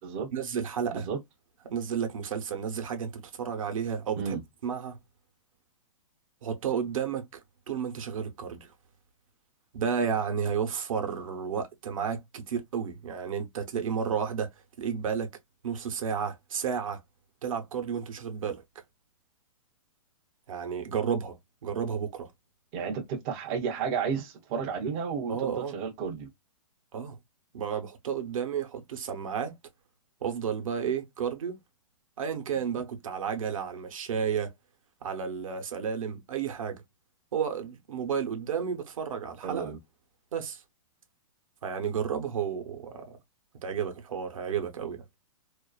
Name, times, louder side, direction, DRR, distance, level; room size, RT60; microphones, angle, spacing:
voice 1, 0.3-1.1 1.6-5.0 6.4-7.4 7.7-8.6 9.7-14.5 14.8-15.3 15.6-17.0 17.4-18.6 20.5-21.4 21.6-22.3 25.3-25.8 26.9-27.2 27.5-29.6 30.2-31.6 32.2-34.5 35.0-36.8 37.3-39.7 40.3-40.6 41.6-43.2 43.6-45.0, right 7 dB, 70° right, 0.8 m, -32 dB
voice 2, 22.7-26.3 39.4-39.8, right 6 dB, 25° right, 0.4 m, -32 dB
2.4 x 2.3 x 2.2 m
hypercardioid pair, 150°, 18 cm